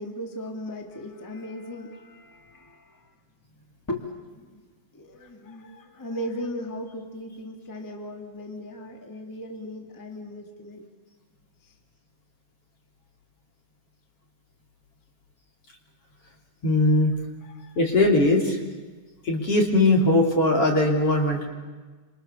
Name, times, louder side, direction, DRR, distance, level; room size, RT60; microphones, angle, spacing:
voice 1, 0.0-3.0 3.9-4.1 4.3-4.6 4.9-10.8 11.6-11.7 17.4-17.8, left 1 dB, 5° left, 3 dB, 1.6 m, -37 dB
voice 2, 16.6-17.1 17.8-18.6 19.2-21.5, left 2 dB, 35° left, 1 dB, 3.6 m, -20 dB
29.5 x 26.5 x 7.1 m, 1.3 s
omnidirectional pair, 5.7 m